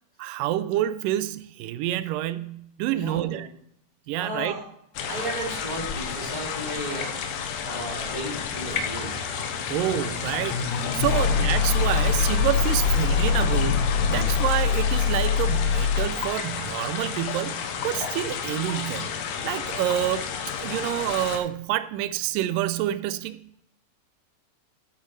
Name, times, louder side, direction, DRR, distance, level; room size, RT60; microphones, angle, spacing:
voice 1, 0.2-3.5 4.1-4.6 9.7-19.1 19.4-20.3 20.6-23.4, right 13 dB, 85° right, 14 dB, 2.2 m, -28 dB
voice 2, 2.9-3.4 4.2-4.6 5.1-7.1 7.6-9.2 11.0-11.3, right 1 dB, 15° left, -3 dB, 1.9 m, -34 dB
sound 1, 5.0-21.4, left 7 dB, 90° left, 2.7 m, -32 dB
sound 2, 8.4-16.3, left 6 dB, 70° left, 1.5 m, -24 dB
13.0 x 9.1 x 3.2 m, 0.74 s
omnidirectional pair, 3.8 m